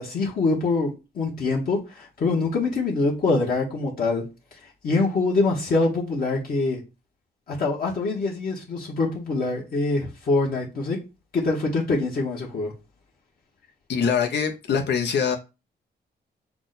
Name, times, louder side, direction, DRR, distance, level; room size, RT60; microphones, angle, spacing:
voice 1, 0.0-4.2 4.8-6.8 7.5-11.0 11.3-12.7, left 3 dB, 55° left, 1.2 m, -24 dB
voice 2, 13.9-15.4, left 6 dB, 75° left, 0.7 m, -23 dB
5.8 x 2.2 x 3.9 m
cardioid pair, 120°, 18 cm